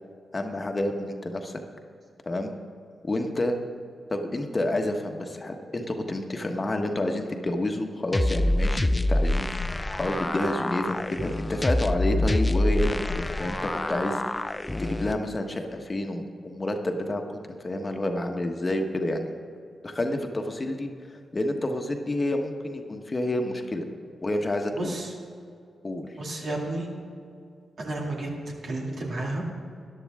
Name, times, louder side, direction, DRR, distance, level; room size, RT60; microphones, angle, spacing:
voice 1, 0.3-1.6 2.2-2.5 3.0-3.6 4.1-14.4 14.8-17.4 17.6-19.3 19.8-20.9 21.3-23.8 24.2-25.0 25.8-26.1, left 1 dB, 40° left, 4 dB, 1.3 m, -29 dB
sound 1, 8.1-15.1, left 1 dB, 20° left, 0.5 m, -26 dB
voice 2, 24.7-25.1 26.2-26.9 27.8-28.3 28.6-29.4, right 2 dB, 65° right, -2 dB, 2.3 m, -31 dB
13.5 x 11.0 x 3.6 m, 2.4 s
supercardioid pair, 40°, 0 cm